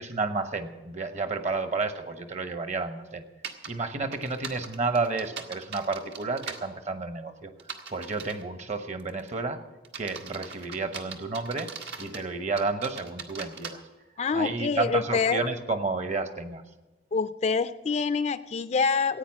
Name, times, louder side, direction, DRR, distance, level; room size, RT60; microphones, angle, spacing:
voice 1, 0.0-3.3 3.7-7.5 7.9-9.6 10.0-11.7 12.0-13.8 14.3-16.6, right 3 dB, 40° right, 9 dB, 1.1 m, -31 dB
sound 1, 3.4-3.7 4.1-6.6 7.6-8.4 9.0-9.3 9.8-12.3 12.6-13.7, right 5 dB, 75° right, 1.4 m, -40 dB
voice 2, 14.2-15.4 17.1-19.2, left 5 dB, 40° left, 11 dB, 0.4 m, -26 dB
15.5 x 9.1 x 7.4 m, 1.1 s
head